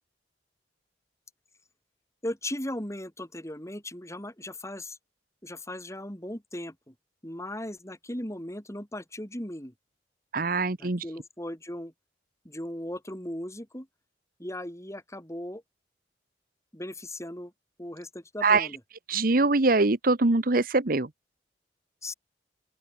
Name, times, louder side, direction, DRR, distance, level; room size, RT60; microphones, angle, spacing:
voice 1, 2.2-5.0 5.4-6.9 7.2-9.7 10.8-11.9 12.4-13.9 14.4-15.6 16.7-17.5 17.8-18.8 22.0-22.1, left 1 dB, 15° left, 7.7 m, -37 dB
voice 2, 10.3-11.0 18.4-18.7 19.1-21.1, right 3 dB, 55° right, 1.1 m, -23 dB
open air
head